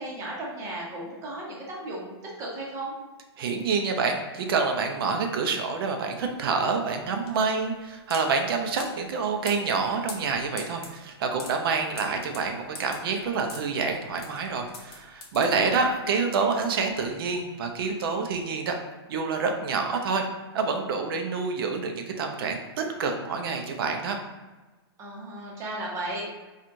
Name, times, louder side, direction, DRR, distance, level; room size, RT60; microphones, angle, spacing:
voice 1, 0.0-2.9 15.4-15.9 25.0-26.3, right 1 dB, 20° right, -4 dB, 0.9 m, -35 dB
voice 2, 3.4-18.8 19.1-20.3 20.5-24.2, right 4 dB, 55° right, 4 dB, 0.6 m, -27 dB
sound 1, 6.2-16.1, left 3 dB, 65° left, 1.0 m, -44 dB
4.4 x 2.4 x 2.6 m, 1.2 s
hypercardioid pair, 150°, 14 cm